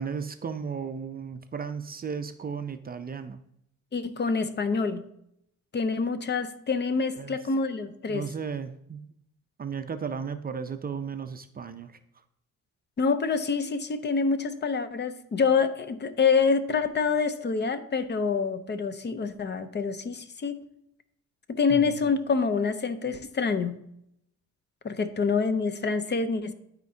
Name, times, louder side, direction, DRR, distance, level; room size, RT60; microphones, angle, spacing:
voice 1, 0.0-3.4 7.2-7.4 8.1-9.0 9.6-12.0 21.7-22.1, right 6 dB, 30° right, 9 dB, 0.5 m, -35 dB
voice 2, 3.9-5.0 5.7-8.2 13.0-20.6 21.5-23.7 24.8-26.5, left 5 dB, 35° left, 11 dB, 0.7 m, -26 dB
12.0 x 4.3 x 2.7 m, 0.75 s
cardioid pair, 90°, 30 cm